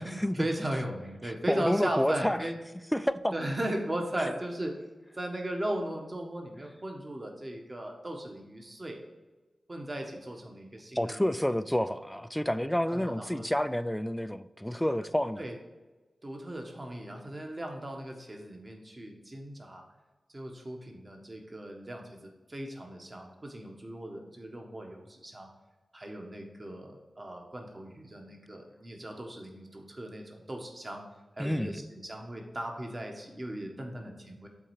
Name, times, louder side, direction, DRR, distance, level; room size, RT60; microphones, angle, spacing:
voice 1, 0.0-2.6 3.3-4.7 5.2-9.0 9.7-11.6 12.9-13.5 15.4-15.5 16.2-19.8 20.3-25.5 25.9-31.0 31.4-34.5, right 1 dB, 30° right, 2 dB, 1.3 m, -37 dB
voice 2, 1.2-2.4 2.9-3.3 4.2-4.3 10.9-15.4 31.4-31.9, equal, 5° left, 13 dB, 0.3 m, -29 dB
7.4 x 4.3 x 4.8 m, 1.2 s
wide cardioid pair, 105°, 0 cm